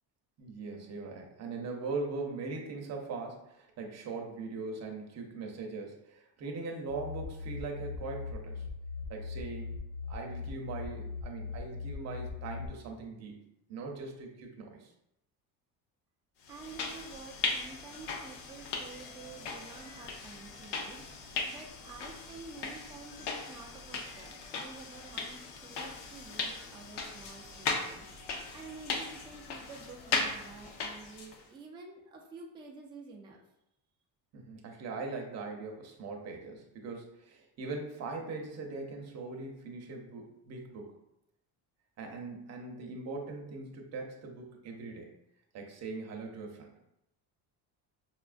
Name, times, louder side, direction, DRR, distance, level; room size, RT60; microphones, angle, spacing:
voice 1, 0.4-8.7 9.1-9.8 10.1-13.4 13.7-14.9 34.3-40.9 42.0-45.1 45.5-46.7, right 3 dB, 40° right, 1 dB, 0.7 m, -40 dB
sound 1, 6.9-12.7, left 4 dB, 40° left, 0.6 m, -40 dB
sound 2, 16.5-31.4, left 4 dB, 80° left, 0.7 m, -38 dB
voice 2, 16.5-33.4, right 4 dB, 15° right, -1 dB, 0.3 m, -50 dB
5.5 x 2.3 x 2.4 m, 0.84 s
cardioid pair, 155°, 40 cm